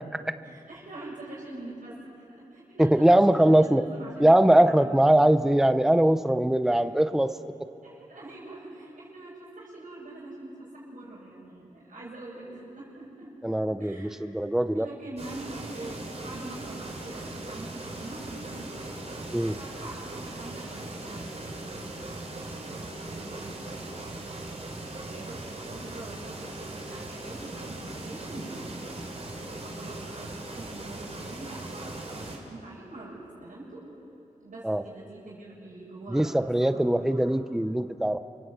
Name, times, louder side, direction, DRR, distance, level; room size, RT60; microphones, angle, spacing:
voice 1, 0.4-4.9 6.7-6.9 7.8-13.3 13.8-14.2 14.7-18.8 19.6-23.8 24.8-29.1 29.4-33.8 34.4-37.4, right 2 dB, 75° right, -8 dB, 7.4 m, -44 dB
voice 2, 2.8-3.8 4.2-7.3 13.4-14.9 19.3-19.6 34.6-34.8 36.1-38.2, right 1 dB, 5° right, 11 dB, 0.7 m, -21 dB
sound 1, 15.2-32.4, right 2 dB, 50° right, 4.0 m, -39 dB
28.5 x 23.5 x 8.2 m, 2.9 s
wide cardioid pair, 110°, 14 cm